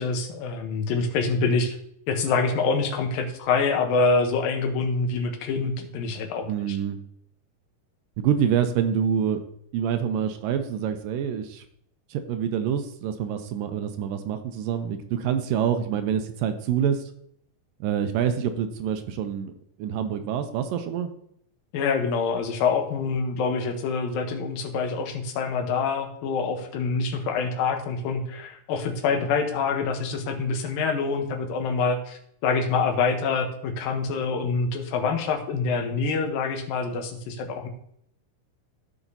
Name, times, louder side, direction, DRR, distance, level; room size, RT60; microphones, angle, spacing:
voice 1, 0.0-1.8 2.1-6.8 21.7-37.7, left 4 dB, 90° left, 5 dB, 2.7 m, -26 dB
voice 2, 6.5-7.0 8.2-9.4 9.7-11.6 12.1-17.0 17.8-19.5 19.8-21.1, right 8 dB, 85° right, 8 dB, 2.3 m, -26 dB
15.0 x 5.0 x 2.7 m, 0.70 s
omnidirectional pair, 4.0 m